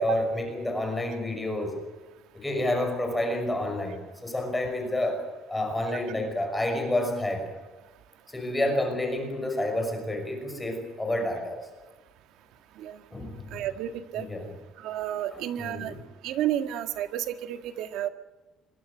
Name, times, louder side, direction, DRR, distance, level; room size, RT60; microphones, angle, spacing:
voice 1, 0.0-1.8 2.3-7.4 8.3-11.6 13.1-13.6 14.3-14.4 15.3-16.0, left 1 dB, 10° left, 3 dB, 5.9 m, -29 dB
voice 2, 13.5-14.3 14.8-15.9 16.2-18.1, right 11 dB, 70° right, 8 dB, 1.9 m, -31 dB
26.0 x 23.0 x 6.5 m, 1.2 s
cardioid pair, 160°, 0 cm